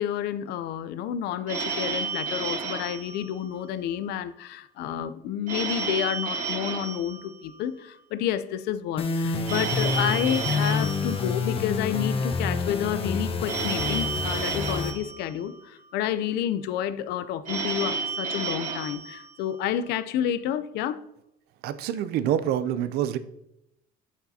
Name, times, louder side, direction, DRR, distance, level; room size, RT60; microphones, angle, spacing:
voice 1, 0.0-21.0, left 10 dB, 70° left, 13 dB, 0.6 m, -30 dB
Telephone, 1.5-4.0 5.5-8.0 9.5-12.0 13.5-15.9 17.5-19.9, right 4 dB, 50° right, 2.5 m, -32 dB
sound 1, 9.0-14.9, left 4 dB, 35° left, 0.9 m, -28 dB
voice 2, 21.6-23.2, right 10 dB, 65° right, 14 dB, 0.5 m, -26 dB
8.2 x 8.1 x 2.8 m, 0.83 s
cardioid pair, 110°, 17 cm